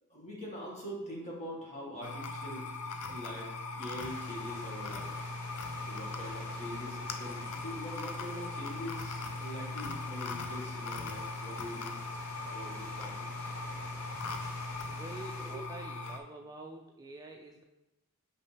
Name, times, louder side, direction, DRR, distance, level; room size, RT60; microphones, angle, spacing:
voice 1, 0.1-2.7 3.0-5.3 5.9-12.0 12.4-13.3 15.4-15.6, equal, 30° left, -5 dB, 1.8 m, -44 dB
sound 1, 2.0-16.2, left 3 dB, 70° left, 0.5 m, -39 dB
sound 2, 4.0-15.5, equal, 10° left, 1.5 m, -50 dB
voice 2, 14.9-17.6, right 2 dB, 15° right, 1 dB, 0.3 m, -47 dB
5.6 x 5.3 x 3.4 m, 0.99 s
head